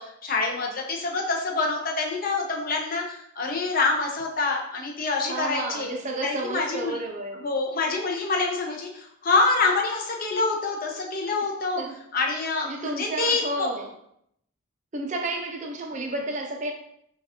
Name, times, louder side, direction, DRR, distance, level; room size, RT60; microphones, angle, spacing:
voice 1, 0.0-5.9 6.2-7.0 7.4-11.8 12.1-13.7, left 3 dB, 40° left, 1 dB, 0.6 m, -26 dB
voice 2, 5.2-7.4 11.4-12.0 12.6-13.9 14.9-16.7, right 2 dB, 35° right, 2 dB, 0.5 m, -31 dB
5.6 x 2.3 x 2.8 m, 0.74 s
head